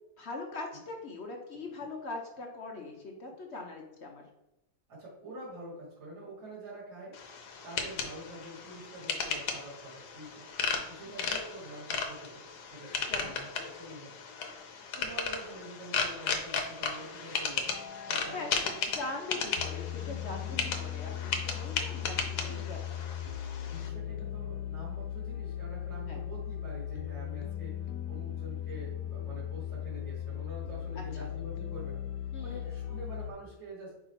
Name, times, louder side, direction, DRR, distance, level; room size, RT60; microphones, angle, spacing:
voice 1, 0.2-4.2 13.1-13.3 18.3-18.5 18.9-22.8 26.1-26.2 32.3-32.7, left 3 dB, 50° left, 1 dB, 0.9 m, -41 dB
voice 2, 4.9-7.2 7.6-10.4 10.9-14.1 14.9-17.7 18.1-18.6 19.2-19.3 22.2-22.7 23.7-32.0 32.4-33.9, right 1 dB, 60° right, -8 dB, 2.4 m, -46 dB
sound 1, 7.1-23.9, left 5 dB, 65° left, 1.3 m, -36 dB
sound 2, 17.7-33.3, left 10 dB, 90° left, 1.3 m, -38 dB
4.9 x 4.3 x 4.4 m, 0.95 s
omnidirectional pair, 2.0 m